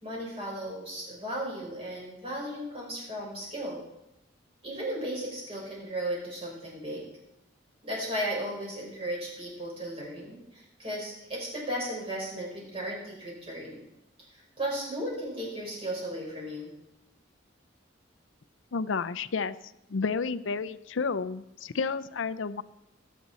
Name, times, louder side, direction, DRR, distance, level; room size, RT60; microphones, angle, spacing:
voice 1, 0.0-3.8 4.6-7.0 7.8-13.8 14.3-16.7, right 1 dB, 30° right, -3 dB, 5.1 m, -35 dB
voice 2, 18.7-19.6 19.9-22.6, left 5 dB, 80° left, 13 dB, 0.5 m, -31 dB
18.5 x 8.4 x 4.1 m, 0.89 s
head